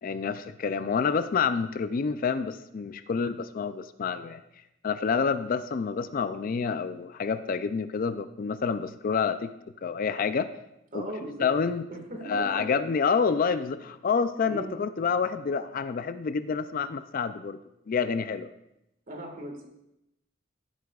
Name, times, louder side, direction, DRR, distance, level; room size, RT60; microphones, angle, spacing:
voice 1, 0.0-4.4 4.8-9.5 9.8-10.5 10.9-11.1 11.4-11.8 12.3-17.6 17.9-18.5, left 5 dB, 45° left, 12 dB, 0.4 m, -28 dB
voice 2, 10.9-11.5 11.9-12.8 13.3-13.4 14.4-14.8 19.1-19.7, right 1 dB, 45° right, 2 dB, 1.7 m, -38 dB
15.0 x 8.1 x 2.4 m, 0.85 s
head